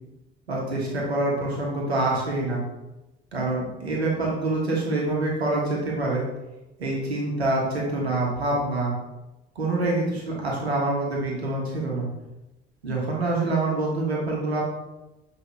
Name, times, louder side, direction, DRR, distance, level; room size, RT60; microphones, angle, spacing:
voice 1, 0.5-2.6 3.3-6.2 6.8-8.9 9.5-12.1 12.8-14.6, right 2 dB, 85° right, -3 dB, 1.4 m, -26 dB
7.8 x 5.1 x 3.2 m, 1.0 s
figure-of-eight pair, 55°, 31 cm